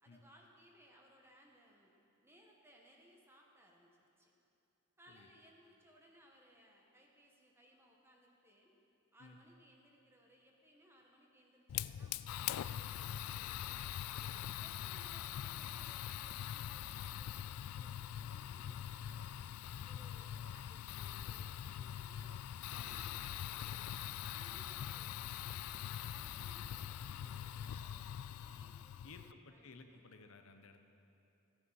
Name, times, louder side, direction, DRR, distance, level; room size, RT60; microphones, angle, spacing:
voice 1, 0.0-1.9 2.2-4.3 5.0-8.7 9.1-13.9 14.6-19.4 19.9-22.4 22.7-23.7 24.1-30.0, equal, 10° right, 0 dB, 1.2 m, -65 dB
Fire, 11.7-29.3, left 10 dB, 90° left, 0.3 m, -43 dB
voice 2, 14.6-15.0 19.9-20.1 22.7-23.4 24.3-24.4 29.0-30.8, left 3 dB, 70° left, 6 dB, 0.8 m, -57 dB
15.0 x 8.5 x 5.6 m, 2.8 s
head